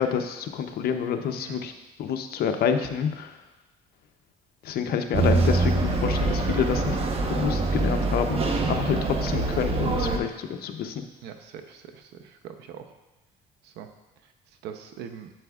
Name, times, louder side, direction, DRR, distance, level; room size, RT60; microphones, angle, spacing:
voice 1, 0.0-1.7 2.0-3.3 4.6-7.0 7.3-11.0, left 7 dB, 65° left, 7 dB, 0.7 m, -28 dB
sound 1, 5.1-10.2, right 3 dB, 35° right, 0.9 m, -24 dB
voice 2, 11.2-12.0 12.4-12.8 13.8-13.9 14.6-15.3, right 8 dB, 85° right, 7 dB, 0.7 m, -41 dB
8.6 x 7.9 x 2.4 m, 1.0 s
cardioid pair, 110°, 17 cm